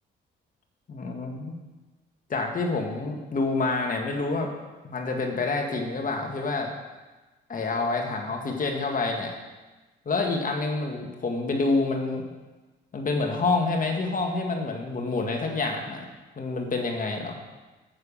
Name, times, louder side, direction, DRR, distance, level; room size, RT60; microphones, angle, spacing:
voice 1, 0.9-1.5 2.3-4.5 4.8-6.7 7.5-9.3 10.1-12.2 12.9-16.0 16.4-17.4, left 3 dB, 45° left, 2 dB, 1.9 m, -27 dB
9.4 x 6.9 x 7.3 m, 1.2 s
cardioid pair, 90°, 20 cm